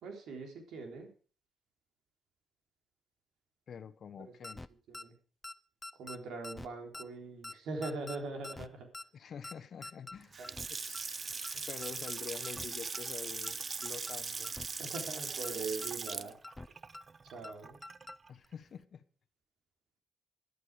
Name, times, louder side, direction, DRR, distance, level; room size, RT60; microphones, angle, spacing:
voice 1, 0.0-1.1 4.2-4.3 4.9-5.1 6.0-8.9 10.4-10.5 11.5-11.6 14.8-16.4 17.2-17.8, right 3 dB, 85° right, 3.8 m, -41 dB
voice 2, 3.7-4.6 9.1-10.4 10.7-11.2 11.7-14.5 18.3-19.0, left 7 dB, 60° left, 1.1 m, -47 dB
sound 1, 4.4-4.7 4.9-5.0 5.4-5.5 5.8-6.2 6.4-6.7 6.9-7.0 7.4-7.5 7.8-8.2 8.4-8.7 8.9-9.0 9.4-9.5 9.8-10.2 10.4-10.7 10.9-11.0 11.4-11.5 11.8-12.1 12.4-12.7 12.9-13.0 13.4-13.5 13.8-14.1 14.4-14.7 14.9-15.0 15.4-15.5 15.8-16.2 16.4-16.7 16.9-17.0 17.4-17.5 17.8-18.2 18.4-18.5, left 2 dB, 15° left, 0.6 m, -46 dB
Water tap faucet / Sink (filling or washing) / Splash splatter, 10.2-18.3, right 4 dB, 35° right, 0.5 m, -40 dB
13.0 x 11.0 x 4.9 m
cardioid pair, 95°, 0 cm